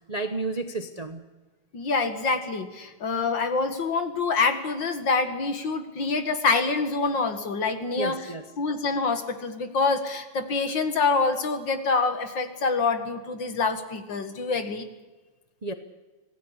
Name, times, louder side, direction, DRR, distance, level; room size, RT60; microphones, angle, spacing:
voice 1, 0.1-1.2 8.0-8.4 15.6-15.7, right 3 dB, 35° right, 7 dB, 0.6 m, -31 dB
voice 2, 1.7-14.9, left 4 dB, 55° left, 7 dB, 2.5 m, -26 dB
26.5 x 18.0 x 8.3 m, 1.3 s
omnidirectional pair, 2.4 m